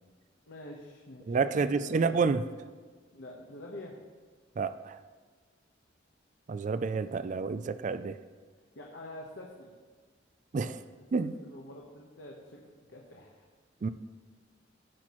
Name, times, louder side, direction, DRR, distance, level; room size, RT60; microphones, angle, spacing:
voice 1, 0.5-2.2 3.1-4.0 8.7-9.7 10.8-13.5 13.8-13.9, left 1 dB, 65° left, -2 dB, 1.1 m, -47 dB
voice 2, 1.3-2.4 4.6-5.0 6.5-8.2 10.5-10.8 11.1-11.3 13.8-13.9, right 4 dB, 40° right, 12 dB, 0.3 m, -29 dB
16.0 x 5.9 x 3.1 m, 1.5 s
head